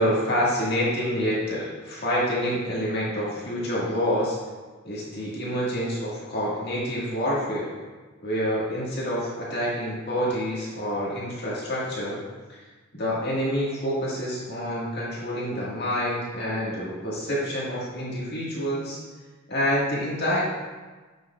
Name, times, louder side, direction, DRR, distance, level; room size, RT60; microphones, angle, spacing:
voice 1, 0.0-4.4 4.8-7.7 8.2-12.2 12.5-12.6 12.9-19.0 19.5-20.4, equal, 50° left, -6 dB, 1.7 m, -27 dB
7.7 x 6.0 x 2.3 m, 1.3 s
head